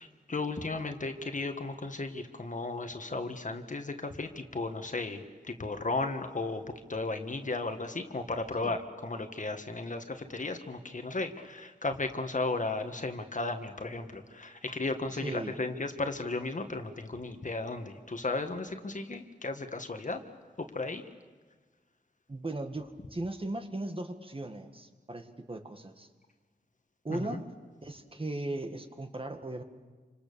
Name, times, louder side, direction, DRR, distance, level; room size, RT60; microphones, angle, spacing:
voice 1, 0.0-20.2 20.6-21.0 27.1-27.4, left 3 dB, 45° left, 6 dB, 1.8 m, -35 dB
voice 2, 15.1-15.6 22.3-26.1 27.0-27.5 27.8-29.6, right 2 dB, 30° right, 6 dB, 1.9 m, -37 dB
28.0 x 26.0 x 7.0 m, 1.4 s
wide cardioid pair, 90°, 18 cm